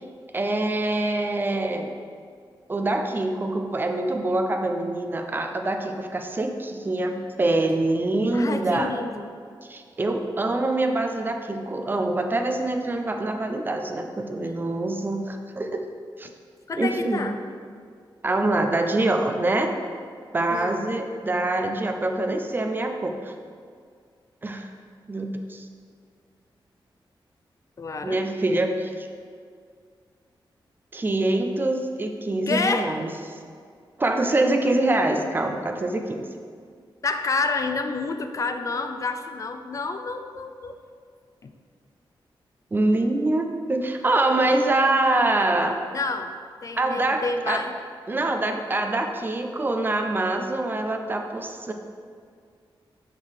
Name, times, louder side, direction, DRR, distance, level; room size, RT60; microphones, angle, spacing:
voice 1, 0.3-1.9 2.7-8.9 9.7-15.8 16.2-16.3 16.8-17.3 18.2-19.7 20.3-23.3 24.4-24.7 25.1-25.7 28.0-29.1 30.9-33.1 34.0-36.3 42.7-45.8 46.8-47.6 48.1-51.7, right 2 dB, 25° right, 5 dB, 0.4 m, -25 dB
voice 2, 8.3-9.3 16.7-17.4 20.5-20.8 27.8-28.2 32.5-32.9 37.0-40.8 41.4-41.5 45.9-46.3 46.6-47.7, left 3 dB, 40° left, 7 dB, 0.4 m, -29 dB
6.2 x 3.7 x 4.8 m, 2.1 s
wide cardioid pair, 155°, 9 cm